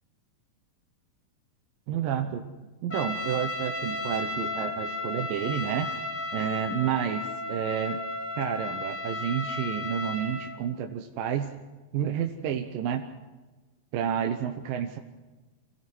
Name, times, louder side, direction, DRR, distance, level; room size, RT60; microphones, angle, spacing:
voice 1, 1.9-2.5 2.8-5.9 6.3-8.0 8.4-11.5 11.9-13.1 13.9-15.0, right 9 dB, 75° right, 5 dB, 2.6 m, -30 dB
Trumpet, 2.9-10.6, left 2 dB, 30° left, 0.8 m, -34 dB
26.5 x 17.0 x 6.2 m, 1.2 s
omnidirectional pair, 4.1 m